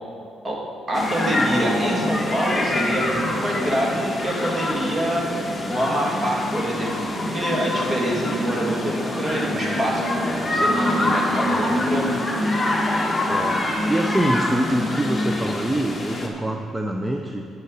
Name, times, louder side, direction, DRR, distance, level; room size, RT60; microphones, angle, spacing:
sound 1, 0.9-16.3, left 1 dB, 15° left, 1.8 m, -25 dB
voice 1, 0.9-5.2 5.7-12.2, right 1 dB, 30° right, -2 dB, 2.5 m, -26 dB
voice 2, 13.3-17.5, right 1 dB, 10° right, 3 dB, 0.6 m, -25 dB
11.5 x 9.3 x 4.1 m, 2.9 s
cardioid pair, 90°, 0 cm